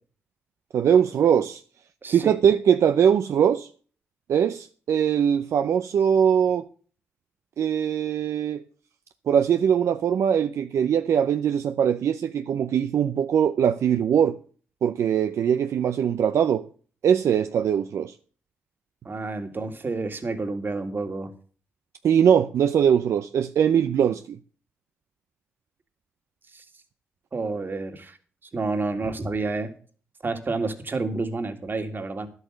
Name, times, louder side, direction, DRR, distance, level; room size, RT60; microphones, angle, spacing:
voice 1, 0.7-1.6 2.1-3.7 4.3-6.7 7.6-8.6 9.3-14.4 14.8-16.7 17.0-18.1 22.0-24.4, right 8 dB, 70° right, 0.5 m, -21 dB
voice 2, 2.0-2.4 19.0-21.3 26.5-26.6 27.3-28.2 28.5-29.7 30.2-32.3, right 3 dB, 40° right, 2.1 m, -29 dB
11.0 x 8.3 x 6.4 m
supercardioid pair, 50°, 5 cm